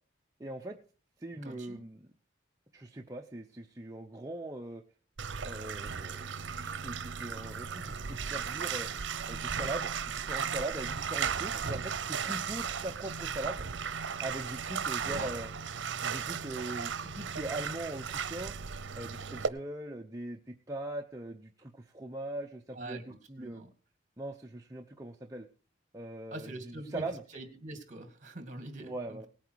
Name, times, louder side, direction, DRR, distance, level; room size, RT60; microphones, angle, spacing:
voice 1, 0.4-0.8 1.2-2.1 2.7-4.8 5.4-8.9 9.3-13.7 14.2-15.5 16.0-18.5 19.0-23.7 24.2-25.5 25.9-27.2 28.8-29.3, right 1 dB, 20° right, 1 dB, 0.7 m, -41 dB
voice 2, 1.4-1.8 11.5-11.6 15.0-15.4 22.7-23.0 23.4-23.7 26.3-27.0 27.3-29.3, right 2 dB, 45° right, 8 dB, 2.2 m, -43 dB
Bathtub (filling or washing), 5.2-19.5, right 6 dB, 85° right, 0.7 m, -36 dB
18.5 x 9.1 x 4.7 m, 0.39 s
head